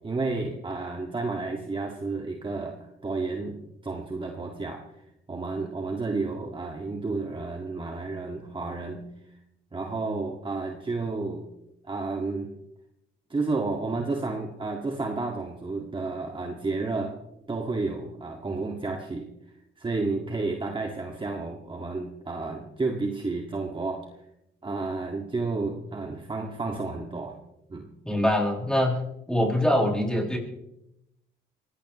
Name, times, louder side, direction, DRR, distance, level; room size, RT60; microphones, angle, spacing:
voice 1, 0.0-4.8 5.3-9.1 9.7-11.5 11.8-12.5 13.3-17.1 17.5-19.3 19.8-24.0 24.6-27.3 27.7-27.9, right 3 dB, 25° right, 2 dB, 1.9 m, -31 dB
voice 2, 28.0-29.0 29.3-30.4, left 1 dB, 5° left, -1 dB, 6.4 m, -23 dB
23.5 x 18.0 x 3.1 m, 0.84 s
cardioid pair, 90°, 20 cm